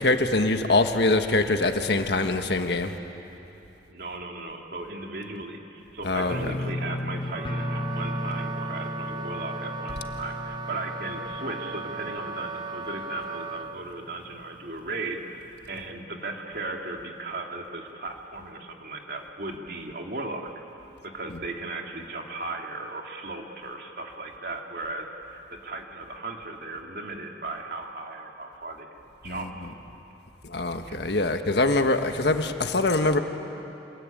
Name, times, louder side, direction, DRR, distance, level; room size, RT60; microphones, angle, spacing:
voice 1, 0.0-2.9 6.0-6.5 29.2-29.5 30.4-33.2, left 2 dB, 70° left, 6 dB, 1.5 m, -24 dB
voice 2, 3.9-15.2 15.7-20.5 21.1-29.7 30.9-31.0, right 2 dB, 55° right, 2 dB, 2.6 m, -36 dB
sound 1, 6.3-13.2 13.5-14.0 14.4-14.5, left 1 dB, 25° left, 1.0 m, -35 dB
Wind instrument woodwind instrument, 7.3-13.8, right 3 dB, 25° right, 0.6 m, -37 dB
27.0 x 21.5 x 9.2 m, 2.9 s
head